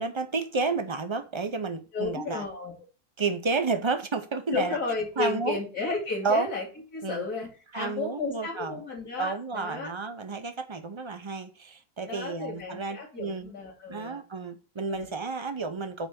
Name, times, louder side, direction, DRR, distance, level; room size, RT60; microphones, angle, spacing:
voice 1, 0.0-2.4 3.2-4.8 5.2-5.6 6.2-6.5 7.0-7.3 7.7-8.8 9.2-13.5 13.9-16.1, right 4 dB, 40° right, 0.4 m, -31 dB
voice 2, 1.9-2.7 4.5-6.7 6.9-9.9 12.1-14.2 14.9-15.1, left 4 dB, 75° left, 3.3 m, -33 dB
9.1 x 3.4 x 6.7 m
omnidirectional pair, 1.6 m